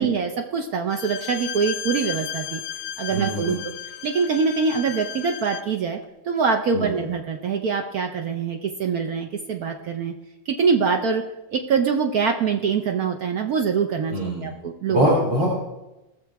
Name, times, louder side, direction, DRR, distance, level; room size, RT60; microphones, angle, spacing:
voice 1, 0.0-2.6 3.0-3.7 4.0-6.0 6.2-10.1 10.5-11.2 11.5-15.1, right 5 dB, 60° right, 3 dB, 1.1 m, -24 dB
Bowed string instrument, 0.9-5.7, left 10 dB, 80° left, 1.3 m, -34 dB
voice 2, 3.1-3.6 6.7-7.0 14.1-14.5 14.9-15.5, equal, 75° right, -5 dB, 3.8 m, -23 dB
19.0 x 6.8 x 4.7 m, 1.0 s
omnidirectional pair, 2.0 m